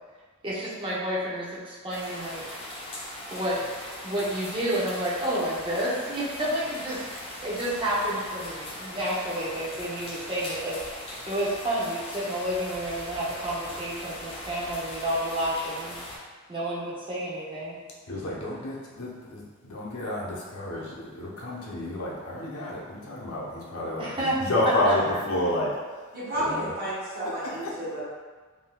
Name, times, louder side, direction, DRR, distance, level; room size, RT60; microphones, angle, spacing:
voice 1, 0.4-2.4 3.3-3.6 4.0-16.0 16.5-17.8 24.0-24.4 24.8-24.9, right 1 dB, 25° right, -7 dB, 0.6 m, -30 dB
sound 1, 1.9-16.2, left 1 dB, 25° left, 0.5 m, -40 dB
voice 2, 18.1-25.8 26.3-26.7 27.4-27.5, left 1 dB, 75° left, -5 dB, 0.7 m, -30 dB
voice 3, 26.1-28.0, right 1 dB, 45° right, -9 dB, 1.1 m, -31 dB
3.6 x 2.6 x 2.2 m, 1.4 s
head